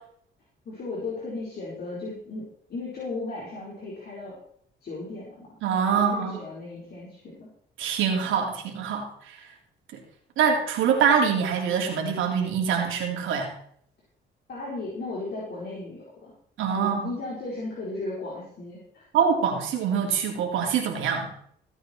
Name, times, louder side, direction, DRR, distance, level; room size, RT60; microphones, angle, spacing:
voice 1, 0.6-4.4 4.8-5.5 5.9-7.5 14.5-16.3 16.8-19.0, left 2 dB, 55° left, -6 dB, 4.5 m, -36 dB
voice 2, 5.6-6.4 7.8-9.4 9.9-10.0 10.4-13.5 16.6-17.1 19.1-21.3, right 7 dB, 85° right, 1 dB, 3.2 m, -24 dB
16.0 x 9.1 x 4.5 m, 0.65 s
cardioid pair, 90°, 20 cm